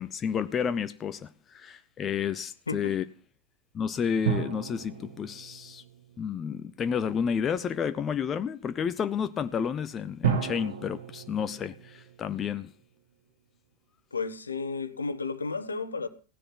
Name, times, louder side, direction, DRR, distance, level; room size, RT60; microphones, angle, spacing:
voice 1, 0.0-3.0 3.7-5.8 6.2-12.7, left 7 dB, 25° left, 0.6 m, -31 dB
voice 2, 2.7-3.0 14.1-16.1, left 4 dB, 75° left, 1.2 m, -33 dB
sound 1, 4.2-6.9 10.2-12.8 13.1-13.2, right 8 dB, 60° right, 3.5 m, -34 dB
16.5 x 10.0 x 5.8 m
figure-of-eight pair, 90°, 0 cm